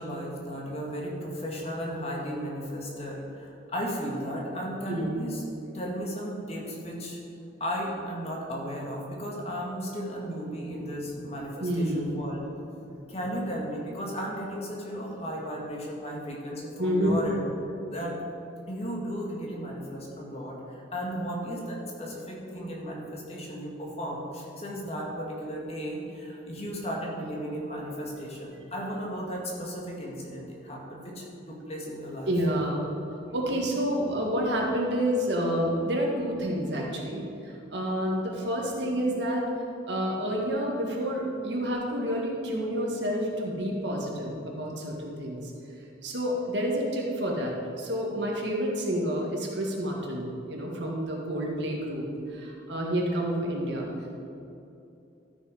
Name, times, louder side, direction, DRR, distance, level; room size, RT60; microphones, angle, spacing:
voice 1, 0.0-5.4 5.7-7.2 7.6-12.4 12.8-17.4 17.8-18.1 18.7-32.3, equal, 35° left, -3 dB, 1.9 m, -35 dB
voice 2, 11.6-12.2 16.8-17.2 32.3-32.9 33.2-39.4 39.9-45.4 46.0-53.9, equal, 70° right, -2 dB, 1.9 m, -29 dB
13.0 x 6.3 x 5.1 m, 2.8 s
head